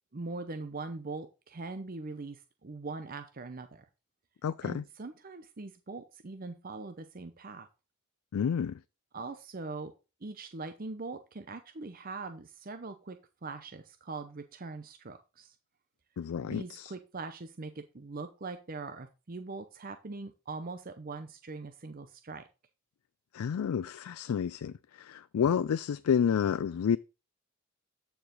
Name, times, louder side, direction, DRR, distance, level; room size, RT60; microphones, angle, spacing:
voice 1, 0.1-3.9 4.6-7.7 9.1-9.9 10.2-15.5 16.4-22.4, right 3 dB, 40° right, 0.7 m, -42 dB
voice 2, 4.4-4.8 8.3-8.8 16.2-16.9 23.3-27.0, left 7 dB, 90° left, 0.4 m, -30 dB
13.5 x 4.8 x 3.8 m
head